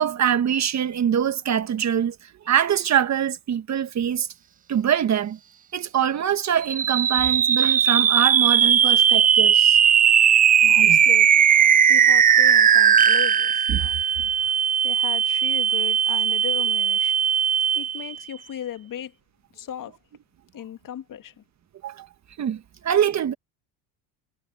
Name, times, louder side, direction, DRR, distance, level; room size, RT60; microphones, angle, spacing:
voice 1, 0.0-4.3 4.7-5.4 5.7-9.8 10.6-11.0 13.7-13.9 21.8-22.1 22.4-23.3, right 9 dB, 35° right, 1.4 m, -24 dB
sound 1, 6.6-18.2, right 8 dB, 20° right, 0.4 m, -18 dB
voice 2, 10.7-11.5 11.9-13.9 14.8-17.2 17.7-19.1 19.5-20.0 20.5-21.4, left 10 dB, 40° left, 2.2 m, -36 dB
supercardioid pair, 110°, 48 cm